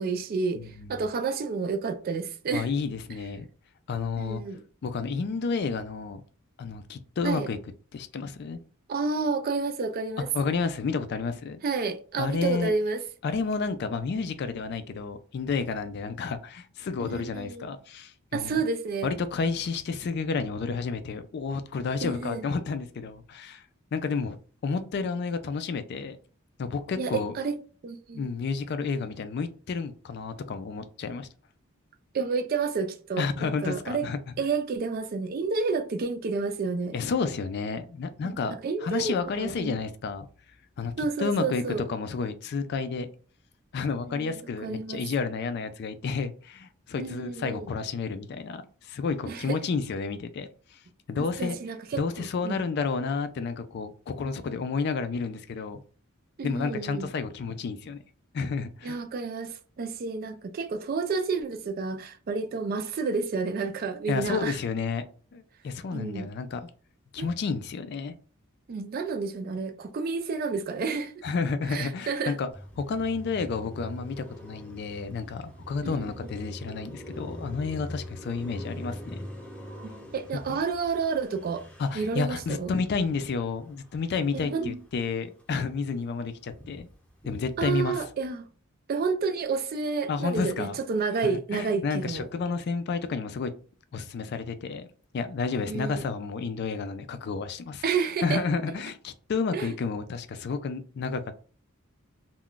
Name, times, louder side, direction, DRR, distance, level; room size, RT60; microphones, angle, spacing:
voice 1, 0.0-2.7 4.2-4.6 7.2-7.5 8.9-10.3 11.6-13.0 17.0-17.7 18.3-19.1 22.0-22.4 27.0-27.6 27.8-28.3 32.1-34.1 34.4-37.0 38.2-38.4 38.6-39.8 41.0-41.8 44.1-45.0 47.0-47.7 49.3-49.6 51.2-52.6 56.4-57.1 58.8-64.6 65.9-66.3 67.2-67.3 68.7-71.1 71.7-72.4 75.8-76.0 79.8-81.6 81.9-82.7 84.3-84.8 87.6-88.4 88.9-92.3 95.6-96.0 97.8-98.4 99.5-99.7, right 4 dB, 45° right, 0.3 m, -30 dB
voice 2, 0.6-1.0 2.5-3.5 3.9-4.4 4.8-6.2 6.6-7.6 7.9-8.6 10.3-11.6 12.2-12.7 13.2-18.6 19.0-23.6 23.9-24.4 24.6-26.2 26.6-27.3 28.1-31.3 33.2-34.2 36.9-40.3 40.8-41.6 41.9-43.1 43.7-50.8 51.1-51.6 52.0-55.8 56.4-58.0 58.3-59.0 64.1-65.0 65.3-66.7 67.1-68.1 71.2-72.5 72.8-79.3 80.5-80.6 81.8-86.9 87.2-88.0 90.1-90.8 91.2-93.5 93.9-94.9 95.1-97.8 98.2-101.2, left 4 dB, 50° left, 0.3 m, -31 dB
Car passing by, 72.5-85.0 85.3-87.8, equal, 5° left, 0.7 m, -43 dB
2.3 x 2.2 x 3.7 m
head